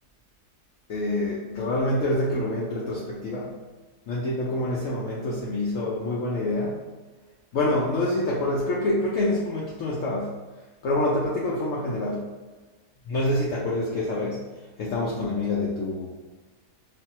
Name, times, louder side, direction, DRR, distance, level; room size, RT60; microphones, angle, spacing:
voice 1, 0.9-3.5 4.1-6.8 7.5-10.4 10.8-12.3 13.1-14.4 14.8-16.1, left 1 dB, 70° left, -4 dB, 0.7 m, -26 dB
3.2 x 2.1 x 2.8 m, 1.2 s
omnidirectional pair, 1.8 m